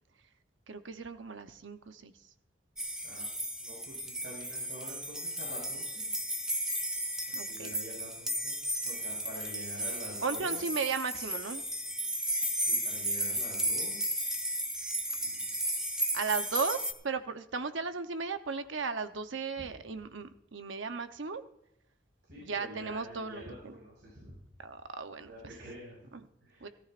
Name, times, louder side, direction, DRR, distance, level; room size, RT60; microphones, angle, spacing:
voice 1, 0.7-2.1 7.3-7.7 10.2-11.7 15.2-15.3 16.1-21.4 22.4-23.7 24.6-25.5 26.1-26.2 26.6-26.7, right 4 dB, 90° right, 8 dB, 0.9 m, -36 dB
sound 1, 2.8-16.9, equal, 5° right, 0.7 m, -34 dB
voice 2, 3.6-6.1 7.3-8.6 8.8-10.7 12.7-14.0 22.2-24.4 25.2-26.0 26.4-26.7, equal, 65° right, -4 dB, 5.6 m, -47 dB
17.5 x 14.0 x 2.5 m, 0.76 s
head